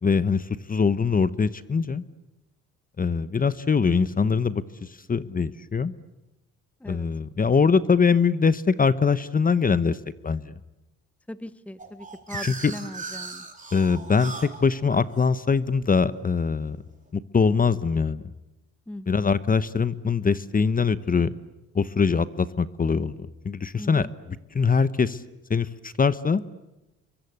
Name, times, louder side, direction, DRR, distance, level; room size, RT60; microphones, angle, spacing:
voice 1, 0.0-2.0 3.0-5.9 6.9-10.0 10.2-10.5 12.4-12.7 13.7-16.8 17.1-18.2 19.1-21.3 21.7-23.2 23.4-25.2 25.5-26.4, left 5 dB, 30° left, 15 dB, 1.0 m, -23 dB
voice 2, 11.3-13.5 18.9-19.2 23.8-24.1, left 1 dB, 5° left, 15 dB, 1.0 m, -39 dB
sound 1, 11.8-16.6, right 4 dB, 25° right, 3.9 m, -39 dB
29.0 x 23.5 x 8.1 m, 0.99 s
cardioid pair, 90°, 30 cm